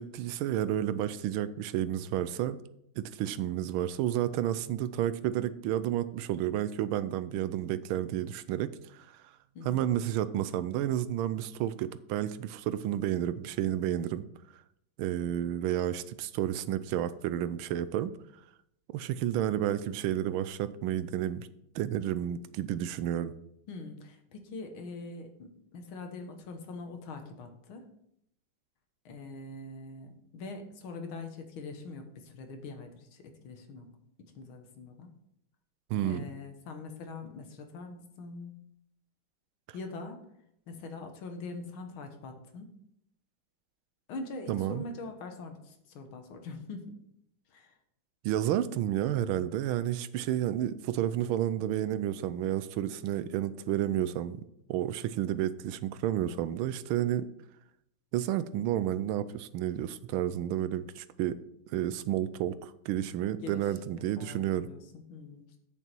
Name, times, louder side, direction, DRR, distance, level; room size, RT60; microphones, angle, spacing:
voice 1, 0.0-2.6 3.0-9.2 9.6-14.2 15.0-18.1 18.9-21.5 21.7-23.3 35.9-36.2 44.5-44.8 48.2-57.3 58.1-61.4 61.7-64.7, right 11 dB, 85° right, 14 dB, 1.4 m, -31 dB
voice 2, 23.7-27.9 29.1-33.9 34.4-35.2 36.0-38.7 39.7-40.3 40.7-42.7 44.1-46.9 47.5-47.7 63.4-63.7 63.9-65.4, left 3 dB, 80° left, 6 dB, 2.0 m, -43 dB
8.2 x 7.0 x 4.4 m, 0.76 s
omnidirectional pair, 2.3 m